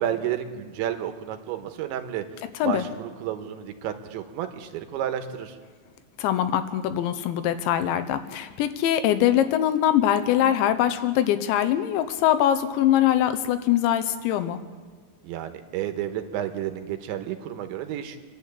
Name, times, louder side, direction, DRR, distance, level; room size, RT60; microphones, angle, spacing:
voice 1, 0.0-2.3 2.6-5.6 15.2-18.2, right 10 dB, 85° right, 7 dB, 3.5 m, -31 dB
voice 2, 6.2-14.6, left 11 dB, 85° left, 10 dB, 3.3 m, -23 dB
27.0 x 11.5 x 8.3 m, 1.5 s
omnidirectional pair, 5.2 m